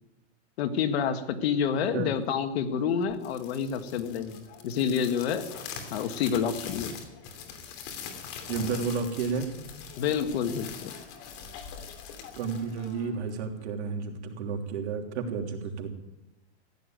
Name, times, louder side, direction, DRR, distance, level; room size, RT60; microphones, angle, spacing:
voice 1, 0.6-5.5 5.9-7.0 10.0-10.9, left 7 dB, 65° left, 9 dB, 1.8 m, -28 dB
sound 1, 3.1-13.4, left 7 dB, 40° left, 2.9 m, -43 dB
voice 2, 8.5-9.5 12.4-15.9, right 5 dB, 70° right, 3 dB, 3.3 m, -31 dB
15.5 x 9.9 x 9.2 m, 0.98 s
supercardioid pair, 145°, 34 cm